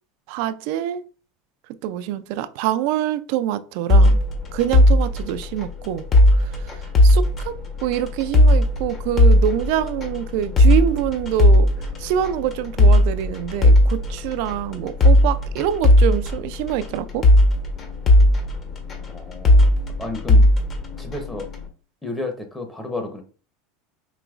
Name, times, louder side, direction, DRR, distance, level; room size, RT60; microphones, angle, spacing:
voice 1, 0.3-1.1 1.8-4.2 4.5-6.1 6.4-6.5 7.0-11.7 12.0-17.2, right 11 dB, 65° right, 0.4 m, -25 dB
sound 1, 3.9-21.6, left 1 dB, 35° left, 1.0 m, -17 dB
voice 2, 19.1-19.7 20.0-20.5 21.0-21.5 22.0-23.2, left 2 dB, 10° left, 0.8 m, -31 dB
4.9 x 2.9 x 2.4 m
supercardioid pair, 110°, 0 cm